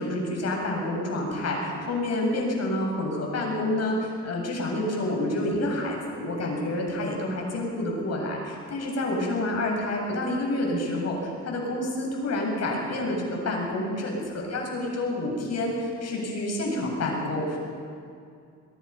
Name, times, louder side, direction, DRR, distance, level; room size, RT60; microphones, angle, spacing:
voice 1, 0.0-17.6, left 1 dB, 60° left, -1 dB, 7.6 m, -28 dB
23.0 x 22.5 x 5.7 m, 2.4 s
cardioid pair, 90°, 30 cm